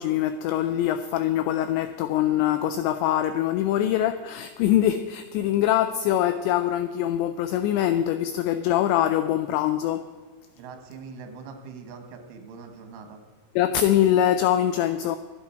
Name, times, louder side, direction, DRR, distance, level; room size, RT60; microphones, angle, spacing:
voice 1, 0.0-10.1 13.6-15.2, left 11 dB, 90° left, 2.5 m, -23 dB
voice 2, 10.6-13.2, right 5 dB, 80° right, 3.9 m, -42 dB
24.0 x 8.4 x 4.5 m
omnidirectional pair, 5.6 m